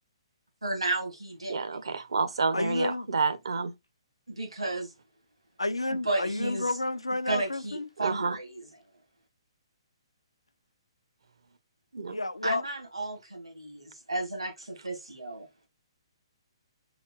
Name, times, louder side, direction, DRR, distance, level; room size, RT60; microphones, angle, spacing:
voice 1, 0.6-1.8 4.4-4.9 5.9-6.6 7.3-8.6 12.4-15.7, right 2 dB, 90° right, 1.9 m, -33 dB
voice 2, 1.5-3.7 8.0-8.4 11.9-12.2, right 4 dB, 70° right, 0.7 m, -29 dB
voice 3, 2.5-3.2 5.6-7.9 12.1-12.6, left 2 dB, 90° left, 0.5 m, -31 dB
4.1 x 3.7 x 2.4 m
figure-of-eight pair, 130°, 3 cm